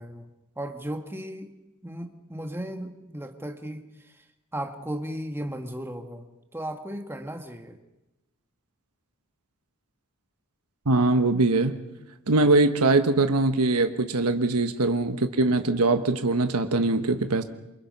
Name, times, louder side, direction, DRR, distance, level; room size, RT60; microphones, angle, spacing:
voice 1, 0.0-1.5 1.8-4.2 4.5-6.3 6.5-7.8, right 1 dB, 10° right, 6 dB, 1.6 m, -36 dB
voice 2, 10.8-11.8 12.3-17.4, right 2 dB, 90° right, 8 dB, 1.3 m, -22 dB
28.0 x 24.0 x 5.5 m, 0.96 s
head